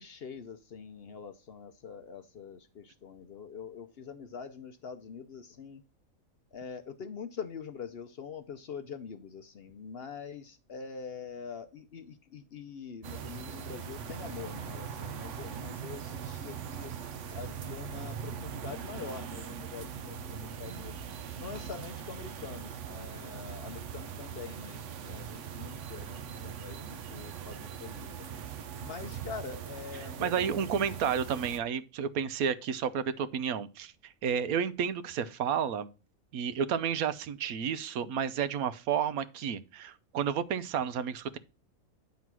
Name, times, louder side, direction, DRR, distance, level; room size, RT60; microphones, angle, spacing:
voice 1, 0.0-5.8 6.5-16.9 17.3-21.0 21.4-28.1 28.8-30.7, left 6 dB, 55° left, 0.8 m, -44 dB
sound 1, 13.0-31.6, right 7 dB, 60° right, 1.0 m, -41 dB
voice 2, 30.2-35.9 36.3-41.4, right 7 dB, 80° right, 1.2 m, -31 dB
9.4 x 3.9 x 5.9 m
omnidirectional pair, 1.5 m